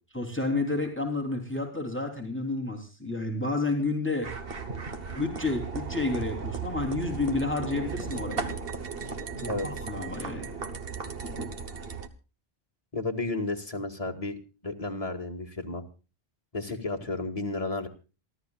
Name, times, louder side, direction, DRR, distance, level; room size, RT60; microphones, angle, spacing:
voice 1, 0.1-4.3 5.1-8.5 9.4-10.5, left 3 dB, 10° left, 2 dB, 3.3 m, -30 dB
sound 1, 4.2-12.1, right 5 dB, 65° right, 1.5 m, -36 dB
voice 2, 12.9-14.4 14.6-15.8 16.5-17.9, left 2 dB, 35° left, 2 dB, 2.2 m, -32 dB
28.0 x 12.5 x 2.4 m, 0.33 s
omnidirectional pair, 1.0 m